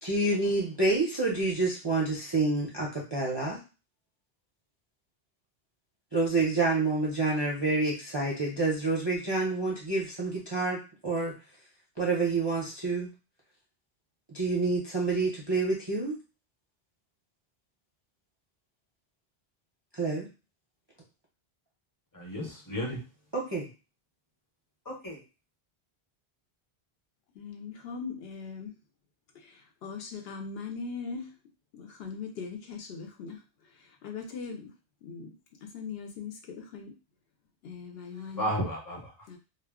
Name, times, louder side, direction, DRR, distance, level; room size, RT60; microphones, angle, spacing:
voice 1, 0.0-3.6 6.1-11.3 12.0-13.1 14.3-16.2 19.9-20.3 23.3-23.7, right 3 dB, 35° right, -4 dB, 0.5 m, -28 dB
voice 2, 22.1-23.0 24.8-25.2 38.3-39.1, equal, 20° left, -2 dB, 0.8 m, -33 dB
voice 3, 27.4-28.7 29.3-31.3 31.7-33.4 33.8-34.7 35.0-35.3 35.6-36.9 37.6-38.5 39.3-39.4, left 5 dB, 70° left, 3 dB, 0.8 m, -40 dB
2.2 x 2.0 x 3.4 m, 0.31 s
omnidirectional pair, 1.1 m